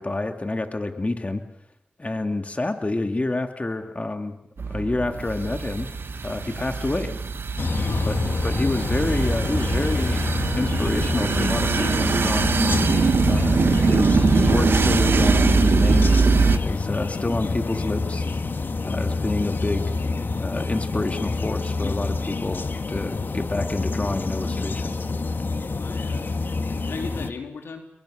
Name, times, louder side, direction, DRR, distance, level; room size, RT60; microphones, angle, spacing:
voice 1, 0.0-1.4 2.0-4.4 4.7-5.9 6.2-7.1 8.0-10.2 10.5-16.3 16.6-18.3 18.9-19.9 20.4-25.0, left 2 dB, 35° left, 6 dB, 2.6 m, -28 dB
sound 1, 4.6-16.6, right 4 dB, 70° right, 1.5 m, -22 dB
sound 2, 7.6-27.3, left 3 dB, 60° left, 1.5 m, -27 dB
voice 2, 7.8-8.1 25.8-26.3 26.7-27.8, left 4 dB, 90° left, 4 dB, 3.2 m, -36 dB
26.5 x 23.5 x 6.7 m, 0.75 s
cardioid pair, 40°, 4 cm